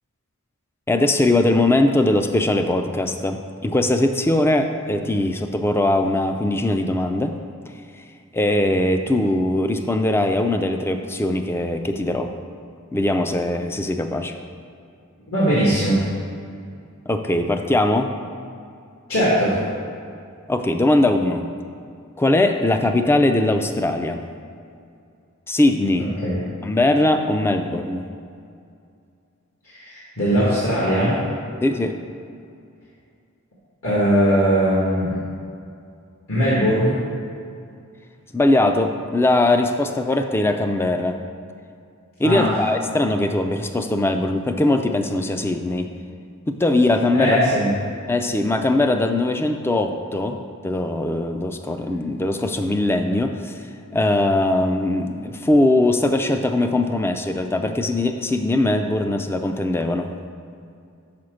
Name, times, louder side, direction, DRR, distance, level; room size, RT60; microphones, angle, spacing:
voice 1, 0.9-7.4 8.3-12.3 12.9-14.3 17.1-18.1 20.5-21.5 22.2-24.2 25.5-26.1 26.6-28.1 31.6-32.0 38.3-41.2 42.2-45.9 46.5-47.4 48.1-50.4 50.6-53.6 53.9-60.1, left 2 dB, 10° left, 6 dB, 0.3 m, -20 dB
voice 2, 15.3-16.1 19.1-19.6 26.0-26.4 29.6-31.2 33.8-35.2 36.3-37.0 42.2-42.6 47.1-47.7, equal, 65° left, -9 dB, 1.7 m, -20 dB
5.9 x 4.9 x 6.3 m, 2.4 s
head